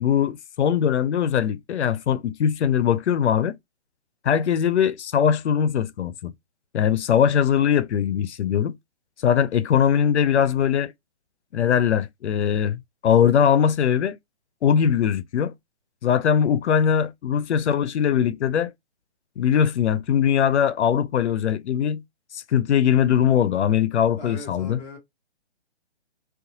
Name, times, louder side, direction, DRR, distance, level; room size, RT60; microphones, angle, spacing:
voice 1, 0.0-3.5 4.2-6.3 6.7-8.7 9.2-10.9 11.5-14.2 14.6-15.5 16.0-18.7 19.4-22.0 22.3-24.8, left 8 dB, 90° left, 0.5 m, -21 dB
voice 2, 24.2-25.0, left 1 dB, 5° left, 0.6 m, -39 dB
2.5 x 2.3 x 2.7 m
hypercardioid pair, 155°, 33 cm